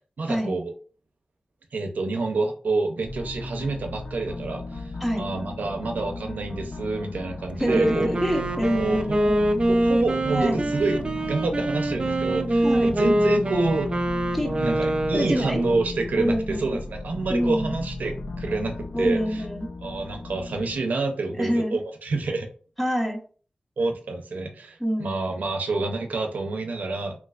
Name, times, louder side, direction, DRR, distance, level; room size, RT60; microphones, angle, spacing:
voice 1, 0.2-0.7 1.7-8.1 8.7-9.2 9.7-11.0 11.2-13.9 14.6-19.4 19.8-22.5 23.8-27.2, right 3 dB, 90° right, 3 dB, 0.5 m, -28 dB
sound 1, 3.0-20.8, left 2 dB, 50° left, 0.4 m, -35 dB
Wind instrument woodwind instrument, 7.5-15.5, right 1 dB, 35° right, 0.3 m, -25 dB
voice 2, 7.6-9.4 10.3-10.7 12.6-12.9 14.3-14.5 15.1-15.6 16.2-16.8 17.3-17.7 18.9-19.7 21.4-21.8 22.8-23.2 24.8-25.1, equal, 5° left, 3 dB, 0.7 m, -26 dB
3.0 x 3.0 x 2.3 m, 0.41 s
wide cardioid pair, 80°, 3 cm